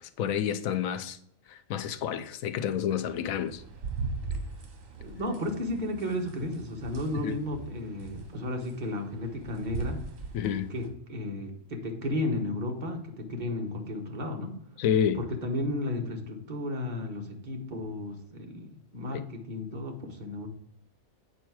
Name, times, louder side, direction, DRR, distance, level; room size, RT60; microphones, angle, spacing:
voice 1, 0.2-1.2 1.5-3.6 7.2-7.3 10.3-10.7 14.8-15.2, left 9 dB, 85° left, 1.0 m, -29 dB
sound 1, 3.2-10.9, right 4 dB, 75° right, 1.5 m, -40 dB
voice 2, 5.0-10.0 10.7-14.6 15.1-20.5, left 1 dB, 35° right, 1.2 m, -33 dB
7.9 x 4.6 x 4.6 m
omnidirectional pair, 1.4 m